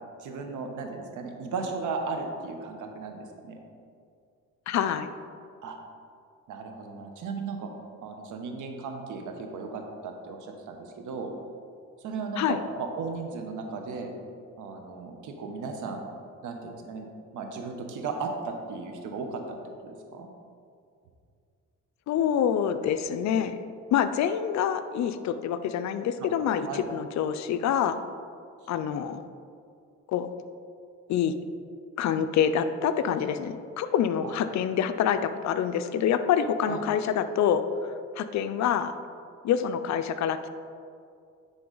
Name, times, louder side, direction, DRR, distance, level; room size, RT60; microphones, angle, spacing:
voice 1, 0.2-3.6 5.6-5.8 6.5-7.7 8.0-11.3 12.0-14.1 14.6-16.0 16.4-17.1 17.3-19.6 19.8-20.3 26.2-26.3 26.7-26.8 34.2-34.3 36.7-36.9, right 4 dB, 80° right, 4 dB, 0.9 m, -36 dB
voice 2, 4.7-5.1 12.4-12.6 22.1-23.6 23.9-28.0 28.7-29.2 30.1-30.3 31.1-31.3 32.0-38.9 39.4-40.5, left 8 dB, 65° left, 10 dB, 0.5 m, -26 dB
9.9 x 3.8 x 3.9 m, 2.3 s
cardioid pair, 90°, 30 cm